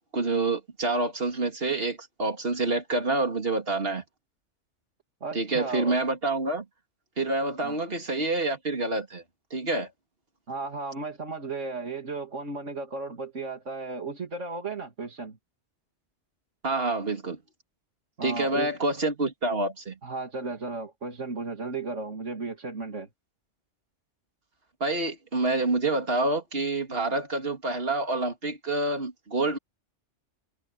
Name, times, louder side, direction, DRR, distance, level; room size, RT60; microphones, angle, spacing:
voice 1, 0.1-4.0 5.3-6.6 7.2-9.2 9.5-9.9 16.6-17.4 18.2-19.9 24.8-29.6, right 2 dB, 55° right, 3.2 m, -27 dB
voice 2, 5.2-6.0 7.6-7.8 10.5-15.4 18.2-18.7 20.0-23.1, right 3 dB, 80° right, 3.1 m, -35 dB
omnidirectional pair, 1.2 m